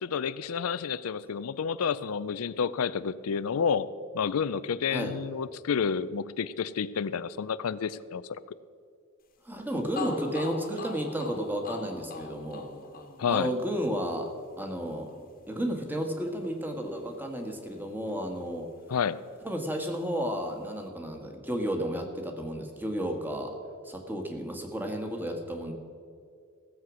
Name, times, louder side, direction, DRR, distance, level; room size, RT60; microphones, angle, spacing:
voice 1, 0.0-3.9 4.1-8.4 13.2-13.5 18.9-19.2, left 6 dB, 85° left, 16 dB, 0.4 m, -30 dB
voice 2, 9.4-12.6 13.3-14.3 14.6-15.1 15.5-18.7 19.4-23.5 23.8-25.7, equal, 10° right, 3 dB, 1.5 m, -32 dB
sound 1, 9.5-9.6 10.0-17.8 18.1-19.2, left 4 dB, 45° left, 1.4 m, -44 dB
16.0 x 7.6 x 6.2 m, 2.3 s
head